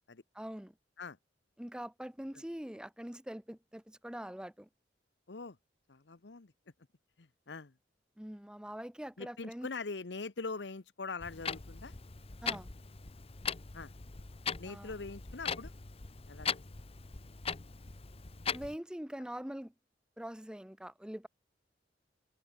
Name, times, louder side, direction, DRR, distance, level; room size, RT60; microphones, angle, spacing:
voice 1, 0.3-0.7 1.6-4.7 8.2-9.7 12.4-12.7 14.6-14.9 18.5-19.7 20.2-21.3, equal, 5° right, 0.8 m, -43 dB
voice 2, 5.9-6.5 7.2-7.7 9.2-11.9 13.7-13.9 14.6-15.7 16.3-16.5, left 4 dB, 75° left, 1.0 m, -42 dB
Clock, 11.2-18.8, left 6 dB, 35° left, 0.9 m, -40 dB
head